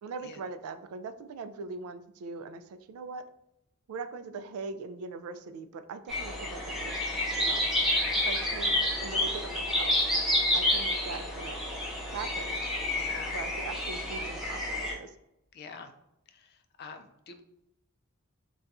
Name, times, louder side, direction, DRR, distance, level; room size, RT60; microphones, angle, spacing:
voice 1, 0.0-3.2 3.9-6.9 7.3-7.7 8.2-8.7 9.0-10.0 10.5-11.6 12.1-12.6 13.3-15.1, right 4 dB, 85° right, 13 dB, 0.3 m, -41 dB
sound 1, 6.1-14.9, left 1 dB, ahead, 0.6 m, -29 dB
voice 2, 12.9-13.4 15.5-15.9 16.3-17.5, left 5 dB, 50° left, 8 dB, 0.4 m, -46 dB
2.4 x 2.3 x 4.0 m, 0.84 s
head